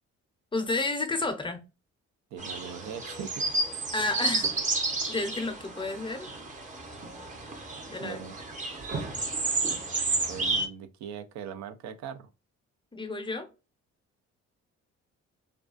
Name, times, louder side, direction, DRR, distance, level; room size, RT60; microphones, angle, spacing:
voice 1, 0.5-1.6 3.9-4.5 5.1-6.3 7.9-8.2 12.9-13.5, left 2 dB, 15° left, 0.5 m, -31 dB
voice 2, 2.3-3.4 8.0-8.4 10.3-12.3, right 8 dB, 70° right, 0.5 m, -40 dB
sound 1, 2.4-10.7, right 3 dB, 25° right, 0.6 m, -31 dB
2.3 x 2.3 x 2.3 m
cardioid pair, 95°, 29 cm